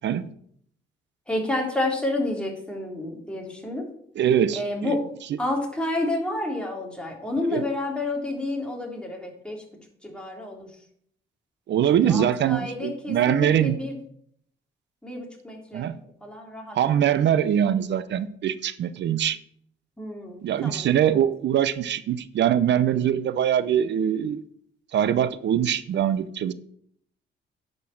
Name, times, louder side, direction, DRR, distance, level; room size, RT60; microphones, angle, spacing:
voice 1, 1.3-3.9 4.5-5.0 5.4-9.6 10.0-10.8 11.9-14.0 15.0-17.0 20.0-21.2, left 2 dB, 5° left, 0 dB, 3.3 m, -30 dB
voice 2, 4.2-4.9 7.5-7.6 11.7-13.8 15.7-16.0 16.7-19.4 20.4-24.4 24.9-26.5, right 10 dB, 65° right, 14 dB, 0.8 m, -23 dB
10.5 x 5.5 x 7.2 m, 0.66 s
cardioid pair, 90°, 20 cm